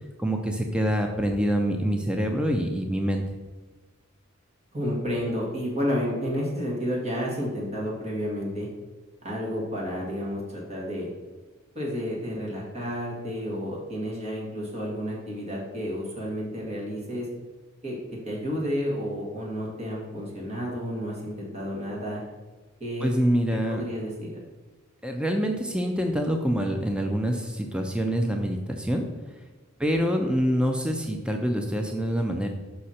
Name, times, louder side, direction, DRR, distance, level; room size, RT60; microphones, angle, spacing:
voice 1, 0.2-3.2 23.0-23.8 25.0-29.0 29.8-32.5, equal, 5° right, 3 dB, 0.5 m, -26 dB
voice 2, 4.7-8.7 9.2-11.1 11.8-17.3 17.8-18.0 18.3-22.2 22.8-23.1 23.7-24.3 30.0-30.1, equal, 30° right, -3 dB, 1.8 m, -31 dB
6.3 x 5.6 x 4.3 m, 1.3 s
head